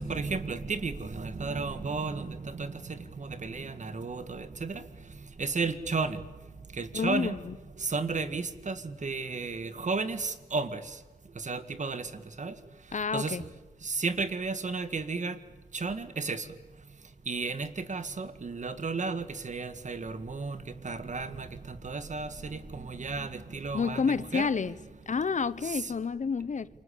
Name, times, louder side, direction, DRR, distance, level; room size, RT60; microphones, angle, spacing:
voice 1, 0.0-7.4 7.8-13.4 13.8-15.4 15.7-24.7 25.6-25.9, right 4 dB, 50° right, 2.0 m, -34 dB
voice 2, 6.9-7.6 12.9-13.4 23.7-24.8 25.1-26.7, left 5 dB, 50° left, 0.9 m, -29 dB
28.0 x 25.0 x 8.5 m
cardioid pair, 75°, 16 cm